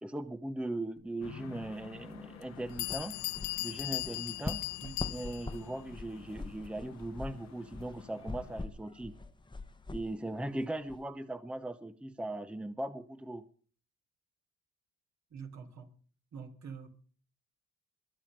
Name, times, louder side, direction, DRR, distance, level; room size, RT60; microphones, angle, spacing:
voice 1, 0.0-3.2 3.6-4.6 5.1-9.2 9.9-13.5, right 1 dB, 5° right, 0.8 m, -39 dB
sound 1, 1.2-8.7, left 9 dB, 65° left, 1.2 m, -52 dB
Bell, 2.4-2.5 2.8-5.6, left 20 dB, 85° left, 0.6 m, -38 dB
sound 2, 2.5-11.0, left 3 dB, 15° left, 1.2 m, -44 dB
voice 2, 15.3-15.9 16.3-16.9, right 6 dB, 65° right, 3.7 m, -45 dB
22.5 x 9.1 x 5.2 m
cardioid pair, 90°, 30 cm